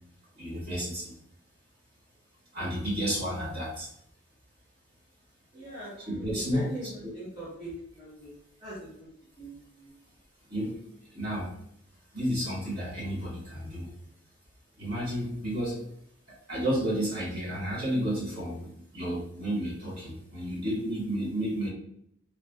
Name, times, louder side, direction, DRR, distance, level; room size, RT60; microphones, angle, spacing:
voice 1, 0.3-1.2 2.5-3.9 6.0-7.1 10.5-10.8 11.1-11.5 12.1-13.9 14.8-15.8 16.3-21.7, equal, 50° right, -6 dB, 1.4 m, -32 dB
voice 2, 5.5-5.9 6.2-6.9 7.1-8.3 8.6-8.9 9.4-9.9, right 1 dB, 25° right, -9 dB, 0.8 m, -42 dB
3.2 x 2.2 x 2.2 m, 0.72 s
head